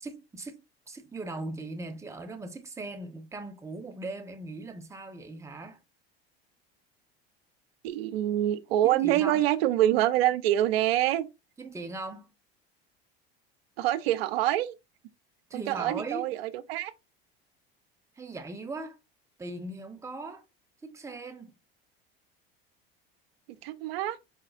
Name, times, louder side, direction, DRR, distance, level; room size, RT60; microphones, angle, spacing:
voice 1, 0.0-0.6 0.9-5.8 8.8-9.4 11.6-12.3 15.5-16.3 18.2-19.0 19.4-20.4 20.8-21.5, right 2 dB, 10° right, 0.6 m, -39 dB
voice 2, 7.8-11.3 13.8-14.7 15.5-16.9 23.6-24.2, right 13 dB, 80° right, 0.5 m, -26 dB
4.9 x 2.4 x 2.3 m
hypercardioid pair, 80°, 30 cm